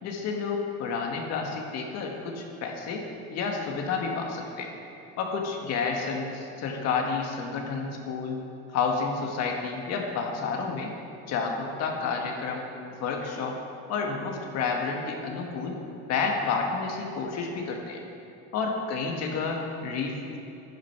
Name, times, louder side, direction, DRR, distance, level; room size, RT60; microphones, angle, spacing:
voice 1, 0.0-3.0 3.3-4.7 5.2-8.4 8.7-10.9 11.3-12.6 13.0-13.6 13.9-15.7 16.1-18.0 18.5-20.4, left 5 dB, 60° left, 1 dB, 1.8 m, -30 dB
11.5 x 10.5 x 6.0 m, 2.8 s
cardioid pair, 160°, 29 cm